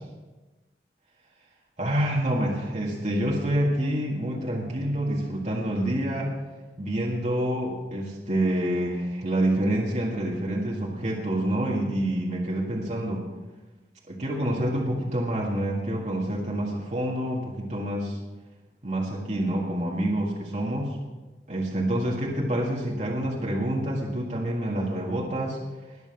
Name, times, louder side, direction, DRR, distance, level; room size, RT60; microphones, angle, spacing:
voice 1, 1.8-6.3 6.8-13.2 14.1-18.2 18.8-21.0 21.5-25.6, right 1 dB, 40° right, -2 dB, 1.7 m, -27 dB
21.0 x 7.2 x 5.9 m, 1.2 s
head